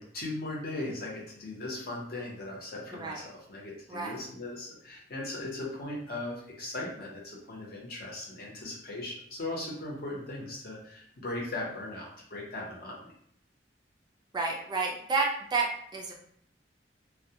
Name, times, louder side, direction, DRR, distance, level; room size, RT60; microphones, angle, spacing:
voice 1, 0.0-13.1, left 2 dB, 55° left, -3 dB, 0.7 m, -38 dB
voice 2, 2.9-3.2 3.9-4.2 14.3-16.2, right 3 dB, 25° right, 0 dB, 0.3 m, -30 dB
2.2 x 2.1 x 2.7 m, 0.66 s
head